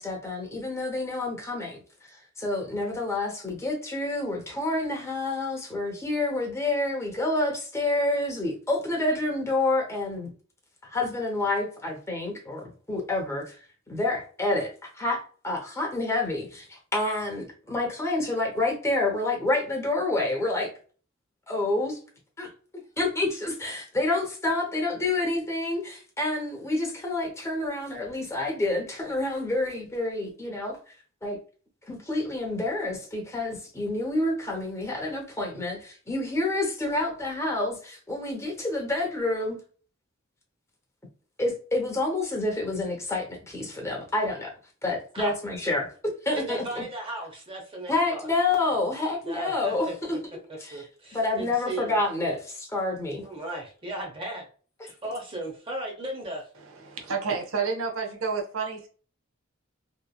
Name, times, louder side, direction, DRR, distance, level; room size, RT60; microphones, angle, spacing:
voice 1, 0.0-1.8 2.1-10.3 10.8-13.6 13.9-20.7 21.5-22.0 22.4-30.8 31.2-31.4 31.9-39.6 41.4-44.5 44.8-46.8 47.9-50.2 50.6-50.8 51.1-53.2, left 2 dB, 15° left, 0.8 m, -28 dB
voice 2, 46.4-48.3 49.2-49.9 50.7-52.0 53.2-54.5 54.8-56.4, right 1 dB, 25° right, 0.7 m, -36 dB
voice 3, 56.8-58.9, right 5 dB, 85° right, 0.6 m, -29 dB
2.9 x 2.4 x 2.3 m
head